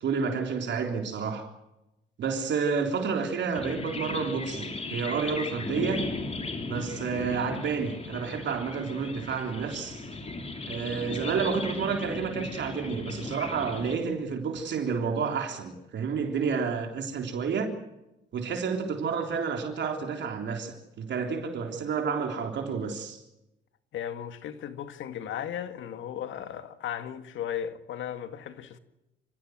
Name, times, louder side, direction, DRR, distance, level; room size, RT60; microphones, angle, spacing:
voice 1, 0.0-1.5 2.2-6.2 6.7-10.0 10.7-17.7 18.3-23.2, right 5 dB, 65° right, 3.5 m, -30 dB
sound 1, 3.5-14.0, left 3 dB, 30° left, 3.5 m, -36 dB
voice 2, 23.9-28.8, left 9 dB, 75° left, 2.0 m, -36 dB
27.5 x 16.0 x 7.9 m
cardioid pair, 90°, 20 cm